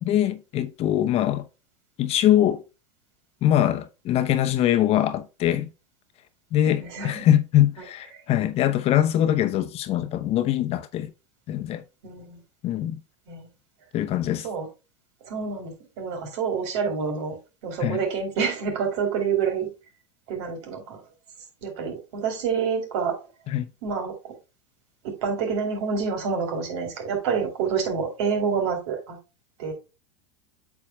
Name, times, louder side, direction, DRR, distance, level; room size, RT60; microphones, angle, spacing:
voice 1, 0.0-1.4 2.0-2.6 3.4-5.7 6.5-11.1 11.5-11.8 12.6-13.0 13.9-14.5 17.8-18.0 23.5-23.7, left 12 dB, 40° left, 0.9 m, -22 dB
voice 2, 6.8-7.3 12.0-12.4 13.3-13.5 14.2-14.7 15.2-17.4 17.6-19.7 20.3-21.0 21.6-23.2 23.8-24.3 25.0-29.2 29.6-29.7, right 6 dB, 60° right, 4.4 m, -28 dB
8.5 x 7.1 x 2.3 m
hypercardioid pair, 90°, 16 cm